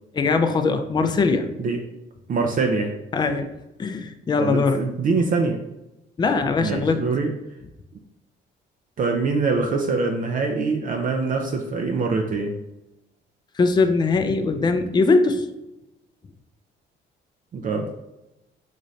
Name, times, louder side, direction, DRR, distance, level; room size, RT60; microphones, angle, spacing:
voice 1, 0.1-1.5 3.1-3.5 3.8-4.8 6.2-7.0 13.6-15.4, left 4 dB, 20° left, 7 dB, 0.4 m, -21 dB
voice 2, 2.3-2.9 4.4-5.6 6.6-7.3 9.0-12.6 17.5-17.9, right 4 dB, 45° right, 3 dB, 0.4 m, -24 dB
4.0 x 2.5 x 3.1 m, 0.97 s
cardioid pair, 90°, 20 cm